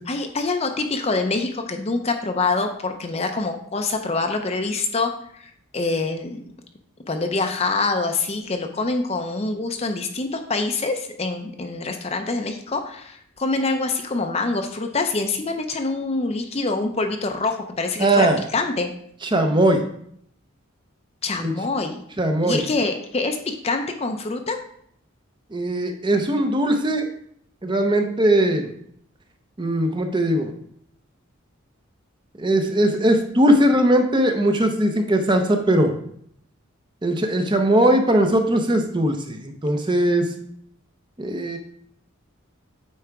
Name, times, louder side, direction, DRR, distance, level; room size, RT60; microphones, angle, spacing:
voice 1, 0.1-6.4 7.1-18.3 18.5-18.9 21.2-22.0 22.4-24.6, left 3 dB, 30° left, 6 dB, 0.5 m, -25 dB
voice 2, 18.0-18.4 19.3-19.8 21.4-21.5 22.2-22.6 25.5-27.1 27.6-28.7 29.6-30.5 32.4-36.0 37.0-40.3 41.2-41.6, right 1 dB, 20° right, 5 dB, 0.6 m, -19 dB
8.6 x 3.4 x 4.7 m, 0.67 s
head